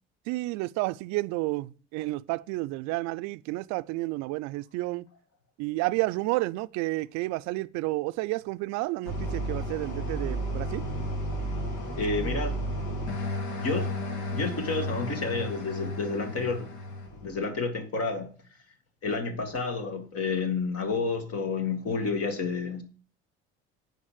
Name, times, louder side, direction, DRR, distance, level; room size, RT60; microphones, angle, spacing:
voice 1, 0.3-5.1 5.6-10.8, right 20 dB, 70° right, 0.5 m, -31 dB
sound 1, 9.1-17.4, equal, 75° left, 2.4 m, -33 dB
voice 2, 11.9-12.6 13.4-13.9 14.3-16.7 17.1-18.3 19.0-22.8, left 4 dB, 50° left, 2.2 m, -30 dB
9.3 x 5.3 x 7.6 m
hypercardioid pair, 60°, 30 cm